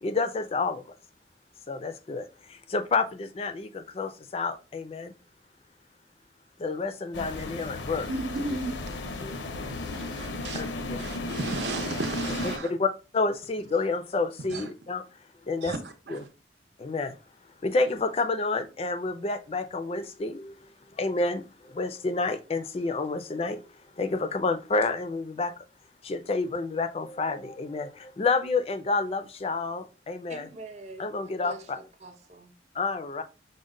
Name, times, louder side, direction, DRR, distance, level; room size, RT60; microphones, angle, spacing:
voice 1, 0.0-0.8 1.7-5.1 6.6-8.1 9.2-9.4 10.5-11.0 12.3-15.0 15.5-15.7 16.1-16.3 16.8-17.2 17.6-23.6 24.0-25.5 26.0-30.5 31.0-31.8 32.7-33.2, left 3 dB, 35° left, 0.3 m, -29 dB
sound 1, 7.1-12.6, left 2 dB, 85° left, 0.6 m, -34 dB
voice 2, 8.1-8.7 9.9-10.6 11.0-12.7 14.5-14.6 15.6-15.8 16.1-16.2, right 2 dB, 75° right, 0.7 m, -33 dB
voice 3, 30.3-32.6, right 2 dB, 40° right, 0.6 m, -45 dB
5.1 x 2.1 x 3.7 m
head